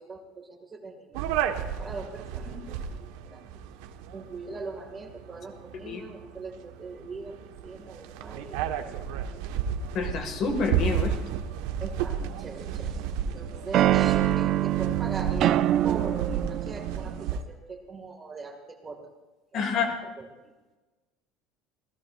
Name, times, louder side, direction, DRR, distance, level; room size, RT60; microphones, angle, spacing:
voice 1, 0.0-1.3 1.8-3.4 4.1-7.4 7.6-9.0 11.8-12.9 13.2-19.1 19.5-20.3, right 3 dB, 15° right, 3 dB, 2.0 m, -41 dB
sound 1, 1.1-17.4, right 8 dB, 90° right, 1.3 m, -33 dB
voice 2, 9.9-11.2 19.5-19.9, left 4 dB, 40° left, 5 dB, 1.9 m, -28 dB
sound 2, 12.2-13.1 13.7-17.4, right 13 dB, 40° right, 0.4 m, -25 dB
28.0 x 17.5 x 2.5 m, 1.2 s
cardioid pair, 170°, 0 cm